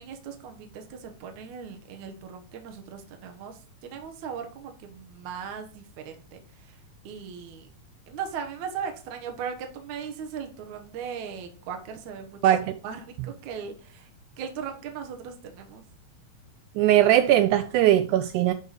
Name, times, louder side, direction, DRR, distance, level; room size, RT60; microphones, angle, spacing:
voice 1, 0.0-7.7 8.1-12.4 12.8-14.1 14.4-15.8, right 7 dB, 65° right, 2.3 m, -38 dB
voice 2, 12.4-12.7 16.8-18.5, right 12 dB, 80° right, 1.8 m, -20 dB
11.0 x 4.5 x 5.0 m
omnidirectional pair, 3.9 m